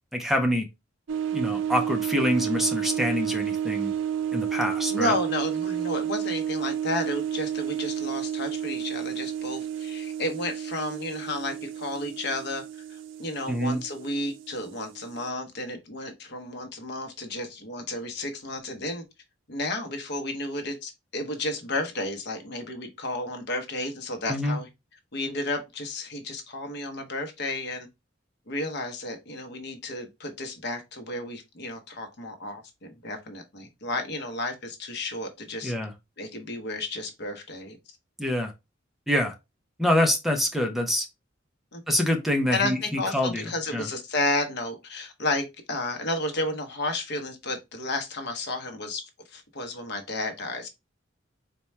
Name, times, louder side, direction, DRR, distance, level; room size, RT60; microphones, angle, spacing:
voice 1, 0.1-0.7 1.3-3.9 4.3-5.1 13.5-13.8 24.3-24.6 35.6-35.9 38.2-38.5 39.1-39.3 39.8-41.1 41.9-43.9, left 1 dB, ahead, 0.5 m, -26 dB
sound 1, 1.1-15.3, right 9 dB, 70° right, 0.4 m, -31 dB
voice 2, 4.9-19.0 19.5-24.7 25.1-27.9 28.5-35.7 36.2-37.8 41.7-41.8 42.5-49.0 49.3-50.7, left 2 dB, 60° left, 0.8 m, -32 dB
4.3 x 2.2 x 3.2 m
head